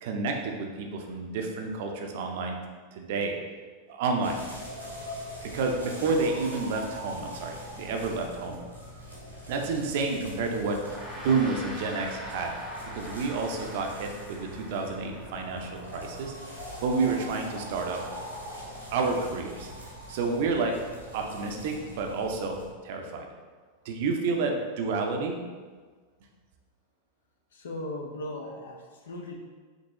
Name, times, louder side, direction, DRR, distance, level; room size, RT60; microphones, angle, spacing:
voice 1, 0.0-2.5 2.9-3.4 3.9-4.4 5.4-8.6 9.5-12.6 12.9-16.3 16.8-18.0 18.9-19.7 20.1-20.8 21.1-23.3 23.9-25.4, right 4 dB, 50° right, 2 dB, 0.5 m, -30 dB
sound 1, 4.2-22.7, equal, 90° right, 1.0 m, -42 dB
Gong, 10.7-20.3, equal, 5° left, 0.9 m, -46 dB
voice 2, 27.5-29.4, left 1 dB, 65° left, 1 dB, 0.7 m, -38 dB
5.3 x 2.9 x 2.8 m, 1.4 s
figure-of-eight pair, 90°, 0 cm